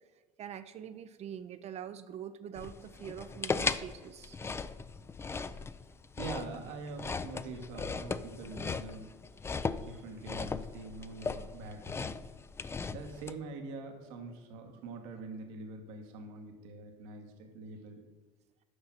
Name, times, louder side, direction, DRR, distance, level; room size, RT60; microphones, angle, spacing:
voice 1, 0.4-4.4 9.5-9.7, right 9 dB, 40° right, 11 dB, 0.5 m, -44 dB
sound 1, 2.6-13.3, left 4 dB, 15° left, 0.3 m, -38 dB
voice 2, 6.2-9.1 9.7-12.2 12.9-18.0, right 3 dB, 70° right, 3 dB, 1.2 m, -44 dB
6.6 x 5.7 x 5.9 m, 1.4 s
hypercardioid pair, 75°, 17 cm